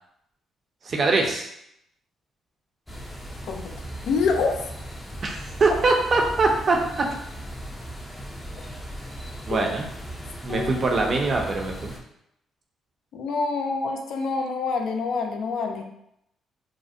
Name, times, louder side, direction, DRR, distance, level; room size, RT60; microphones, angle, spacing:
voice 1, 0.8-1.5 5.2-6.8 9.5-9.9 10.4-11.9, right 3 dB, 45° right, 1 dB, 0.5 m, -23 dB
sound 1, 2.9-12.0, equal, 10° left, 0.4 m, -37 dB
voice 2, 4.0-4.6 10.5-10.7 13.1-15.8, left 4 dB, 75° left, 3 dB, 0.3 m, -26 dB
2.4 x 2.0 x 2.5 m, 0.77 s
cardioid pair, 90°, 0 cm